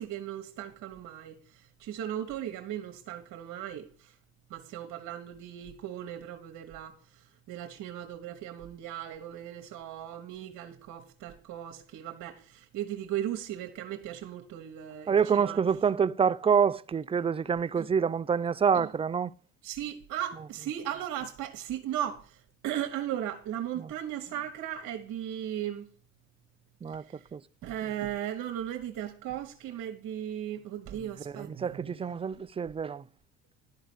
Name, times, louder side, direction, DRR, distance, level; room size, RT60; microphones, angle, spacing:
voice 1, 0.0-4.1 4.5-15.6 17.8-17.9 18.7-18.9 19.6-25.9 27.1-27.2 27.6-32.0, right 11 dB, 60° right, 1.2 m, -37 dB
voice 2, 15.1-19.3 23.8-23.9 26.8-27.1 27.3-27.4 31.3-33.0, right 7 dB, 15° right, 0.4 m, -27 dB
11.5 x 4.0 x 7.7 m
supercardioid pair, 75°, 36 cm